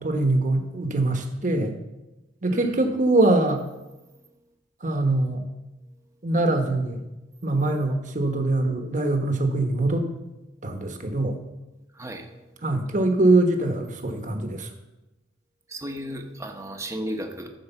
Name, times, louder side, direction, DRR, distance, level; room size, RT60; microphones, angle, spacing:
voice 1, 0.0-1.8 2.4-3.6 4.8-5.4 6.2-7.0 7.4-10.1 10.6-11.4 12.6-14.7, right 2 dB, 45° right, 5 dB, 1.2 m, -23 dB
voice 2, 2.5-2.8 12.0-12.3 15.7-17.5, equal, 15° right, 4 dB, 1.0 m, -34 dB
13.5 x 4.8 x 6.9 m, 1.0 s
head